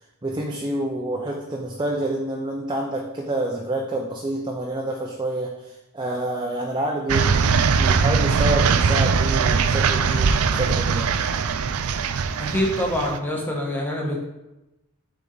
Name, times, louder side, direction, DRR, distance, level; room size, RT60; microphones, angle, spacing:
voice 1, 0.2-7.3 7.8-11.2, right 1 dB, 20° right, -1 dB, 0.6 m, -28 dB
sound 1, 7.1-13.2, right 5 dB, 85° right, 0.4 m, -21 dB
voice 2, 12.4-14.2, left 1 dB, 10° left, -2 dB, 1.2 m, -25 dB
7.1 x 4.4 x 3.9 m, 0.97 s
head